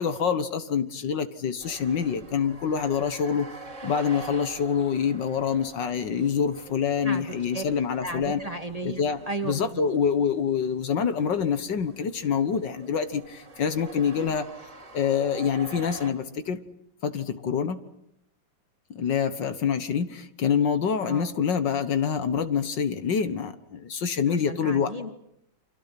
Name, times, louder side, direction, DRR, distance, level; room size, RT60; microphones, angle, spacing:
voice 1, 0.0-3.5 3.8-8.4 8.8-14.5 14.9-16.6 17.0-17.8 18.9-24.9, left 7 dB, 65° left, 10 dB, 1.9 m, -26 dB
sound 1, 1.6-16.1, right 3 dB, 40° right, 2.6 m, -46 dB
voice 2, 7.0-7.6 8.0-9.8 21.0-21.3 24.3-25.1, right 2 dB, 20° right, 6 dB, 1.8 m, -35 dB
29.5 x 25.5 x 5.9 m, 0.77 s
omnidirectional pair, 2.2 m